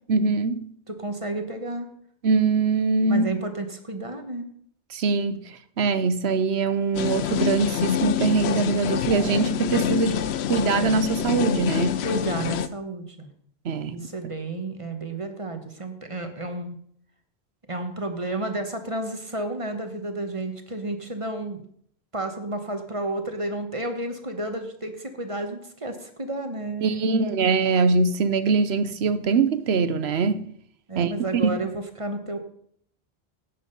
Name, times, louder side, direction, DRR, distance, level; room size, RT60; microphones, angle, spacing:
voice 1, 0.1-0.7 2.2-3.2 4.9-10.2 10.5-12.0 13.6-14.0 26.8-30.4 31.0-31.6, right 4 dB, 80° right, 1.1 m, -23 dB
voice 2, 0.9-1.9 3.1-4.5 12.0-13.3 13.9-16.8 17.7-21.6 22.1-27.4 30.9-32.4, right 2 dB, 30° right, 1.3 m, -31 dB
sound 1, 6.9-12.7, left 10 dB, 80° left, 0.9 m, -26 dB
11.5 x 8.7 x 5.4 m
omnidirectional pair, 1.1 m